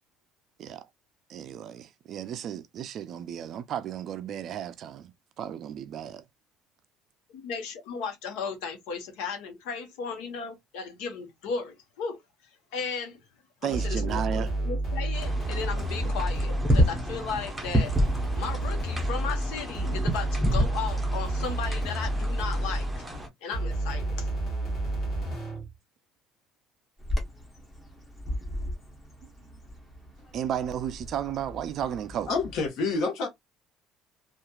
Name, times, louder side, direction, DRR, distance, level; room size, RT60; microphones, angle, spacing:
voice 1, 1.3-5.1 5.4-6.2 13.6-14.5 16.0-16.1 30.3-32.4, right 9 dB, 40° right, 0.3 m, -34 dB
voice 2, 7.3-12.2 12.7-13.2 13.6-17.9 18.3-22.9 23.4-24.3, left 5 dB, 90° left, 1.0 m, -35 dB
sound 1, 13.7-17.0 17.9-23.0 23.5-25.7, right 1 dB, 40° left, 1.4 m, -30 dB
sound 2, 15.1-23.3, equal, 5° right, 0.6 m, -29 dB
Bird vocalization bird call bird song, 27.0-32.7, left 1 dB, 15° left, 0.9 m, -37 dB
voice 3, 32.3-33.3, left 4 dB, 60° left, 1.1 m, -27 dB
2.8 x 2.4 x 2.2 m
cardioid pair, 170°, 0 cm